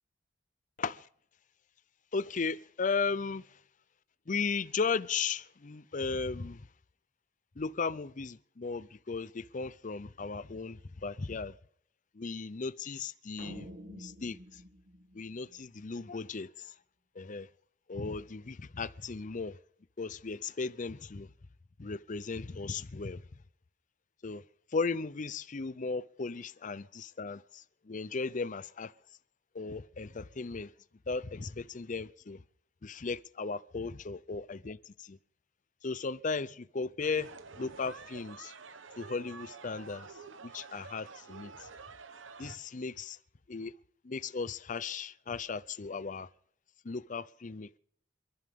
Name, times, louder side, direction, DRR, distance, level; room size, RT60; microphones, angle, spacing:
voice 1, 2.1-3.6 4.3-6.7 7.6-11.5 12.1-14.6 15.1-16.7 17.2-17.5 17.9-19.6 20.0-21.3 21.8-23.2 24.2-24.4 24.7-28.9 29.5-30.7 31.1-32.4 32.8-35.2 35.8-37.3 37.6-38.5 39.0-41.7 42.4-43.2 43.5-43.7 44.0-46.3 46.8-47.8, left 4 dB, 40° left, 0.6 m, -36 dB
sound 1, 13.4-15.8, equal, 50° right, 2.0 m, -49 dB
sound 2, 37.0-42.6, right 5 dB, 80° right, 1.1 m, -49 dB
28.5 x 11.0 x 3.7 m
head